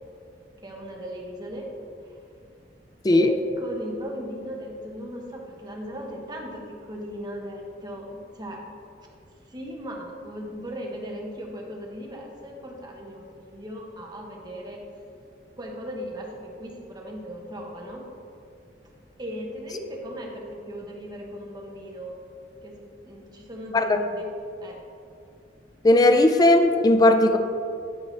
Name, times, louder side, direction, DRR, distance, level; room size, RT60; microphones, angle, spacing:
voice 1, 0.6-1.7 2.1-2.2 3.1-8.6 9.5-14.8 15.6-18.0 19.2-22.1 22.6-22.8 23.0-24.3 24.6-24.8, equal, 25° right, -1 dB, 1.0 m, -37 dB
voice 2, 25.8-27.4, left 1 dB, 20° left, 7 dB, 0.4 m, -17 dB
9.9 x 4.6 x 3.3 m, 2.4 s
head